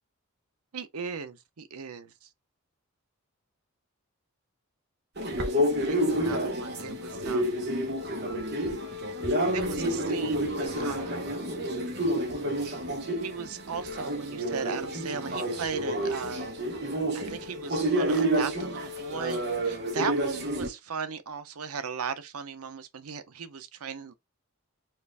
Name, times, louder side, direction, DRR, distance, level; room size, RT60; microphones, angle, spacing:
voice 1, 0.7-2.3 5.4-7.6 9.5-11.2 13.2-16.5 17.1-24.1, right 6 dB, 85° right, 0.7 m, -37 dB
sound 1, 5.2-20.7, right 1 dB, 50° right, 1.1 m, -29 dB
Explosion, 10.6-12.4, right 2 dB, 20° right, 1.1 m, -47 dB
4.4 x 2.5 x 3.4 m
head